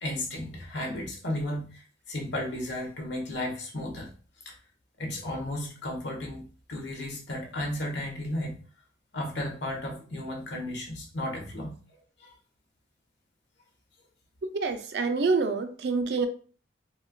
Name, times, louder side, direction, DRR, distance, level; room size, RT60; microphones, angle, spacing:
voice 1, 0.0-4.1 4.4-4.6 5.0-8.6 9.1-11.8 12.2-12.3, left 1 dB, 80° left, 1.1 m, -34 dB
voice 2, 14.4-16.3, right 4 dB, 65° right, 0.4 m, -27 dB
4.2 x 2.4 x 2.3 m
head